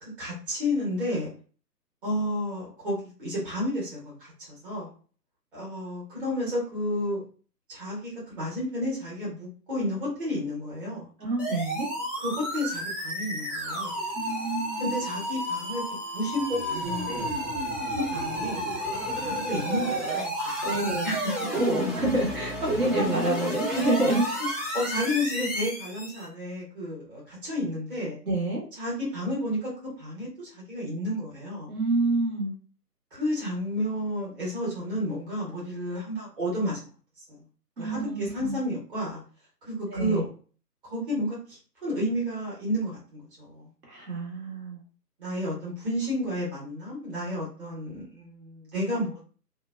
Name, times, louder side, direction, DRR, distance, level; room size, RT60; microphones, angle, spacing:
voice 1, 0.0-1.3 2.0-4.9 5.5-7.2 7.7-11.1 12.2-14.0 14.8-15.8 16.1-17.4 18.0-18.7 19.2-21.3 24.7-28.2 28.8-31.7 33.1-36.9 37.2-37.4 37.8-39.2 39.6-40.3 40.8-43.7 45.2-49.2, left 1 dB, 30° right, -6 dB, 1.3 m, -31 dB
voice 2, 11.2-11.9 14.1-14.9 20.6-21.1 21.5-24.5 28.2-28.6 31.7-32.5 37.8-38.6 39.9-40.3 43.9-44.8, right 2 dB, 65° right, -4 dB, 1.3 m, -27 dB
sound 1, 11.4-26.3, equal, ahead, 0.3 m, -32 dB
2.7 x 2.2 x 2.2 m, 0.39 s
figure-of-eight pair, 140°, 49 cm